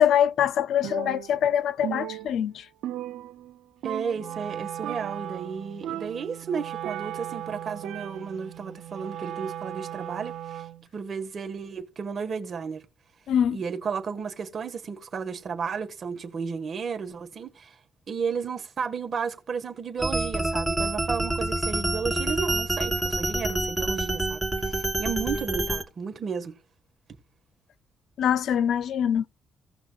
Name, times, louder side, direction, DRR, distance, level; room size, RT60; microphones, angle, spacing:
voice 1, 0.0-2.7 13.3-13.6 28.2-29.2, left 9 dB, 70° left, 0.3 m, -23 dB
Percussion, 0.8-1.5 1.8-3.6 3.8-4.5 4.8-5.3 5.8-7.4 7.8-8.5, right 13 dB, 85° right, 0.3 m, -37 dB
voice 2, 3.8-10.6 10.9-12.8 13.5-17.7 18.1-26.6, right 6 dB, 50° right, 1.4 m, -33 dB
Wind instrument woodwind instrument, 4.1-10.9, right 11 dB, 70° right, 1.1 m, -38 dB
sound 1, 20.0-25.8, right 1 dB, 5° right, 2.0 m, -27 dB
16.5 x 5.8 x 2.3 m
cardioid pair, 90°, 0 cm